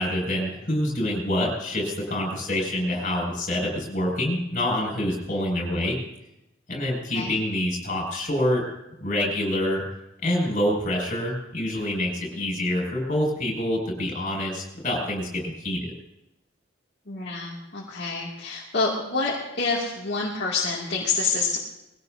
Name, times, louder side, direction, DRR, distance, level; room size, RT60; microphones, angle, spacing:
voice 1, 0.0-6.0 6.7-8.6 9.0-9.8 10.2-15.8, left 1 dB, 40° left, 0 dB, 6.2 m, -26 dB
voice 2, 17.1-21.6, left 4 dB, 55° left, -5 dB, 2.4 m, -27 dB
21.5 x 16.5 x 2.7 m, 0.88 s
head